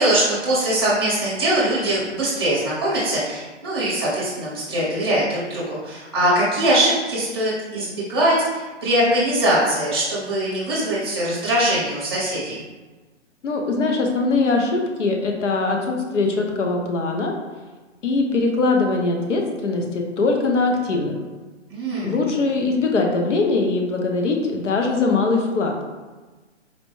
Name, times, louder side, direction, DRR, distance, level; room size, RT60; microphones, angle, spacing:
voice 1, 0.0-12.6 21.7-22.2, right 1 dB, 20° right, -7 dB, 0.8 m, -22 dB
voice 2, 13.4-17.3 18.0-21.2 22.0-25.7, left 3 dB, 75° left, 2 dB, 0.8 m, -21 dB
4.1 x 2.2 x 3.0 m, 1.3 s
hypercardioid pair, 180°, 36 cm